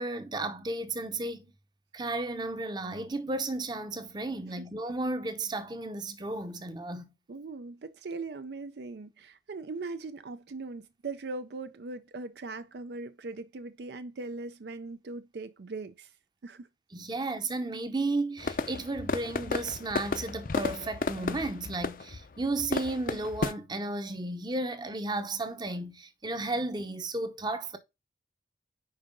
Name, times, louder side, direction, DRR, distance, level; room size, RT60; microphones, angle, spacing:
voice 1, 0.0-1.5 1.9-7.1 16.9-27.8, right 2 dB, 25° right, 0.8 m, -33 dB
voice 2, 7.3-16.1 16.4-16.7, right 3 dB, 65° right, 0.5 m, -40 dB
sound 1, 18.4-23.5, left 3 dB, 50° left, 0.5 m, -33 dB
5.5 x 4.8 x 5.1 m
head